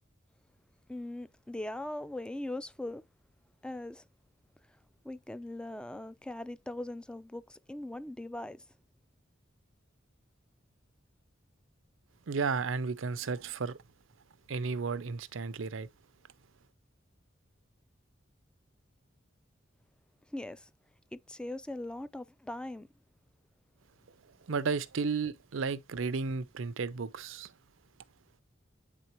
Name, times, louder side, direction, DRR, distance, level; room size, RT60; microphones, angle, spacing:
voice 1, 0.9-3.0 3.6-4.0 5.0-8.7 20.3-20.7 21.1-22.9, left 1 dB, 5° left, 0.3 m, -40 dB
voice 2, 12.3-13.8 14.5-15.9 24.5-27.5, right 5 dB, 85° right, 0.6 m, -33 dB
9.1 x 3.8 x 2.9 m
head